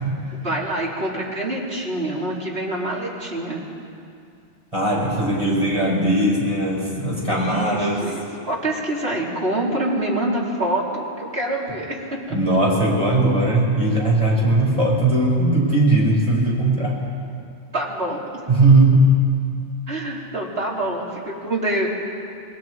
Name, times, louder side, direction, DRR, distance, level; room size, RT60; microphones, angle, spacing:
voice 1, 0.3-3.6 7.3-12.0 17.7-18.2 19.9-21.9, right 1 dB, 60° right, -3 dB, 3.5 m, -26 dB
voice 2, 4.7-8.0 12.3-17.0 18.5-19.1, right 2 dB, 25° right, -4 dB, 5.5 m, -19 dB
27.5 x 20.5 x 4.8 m, 2.4 s
omnidirectional pair, 1.2 m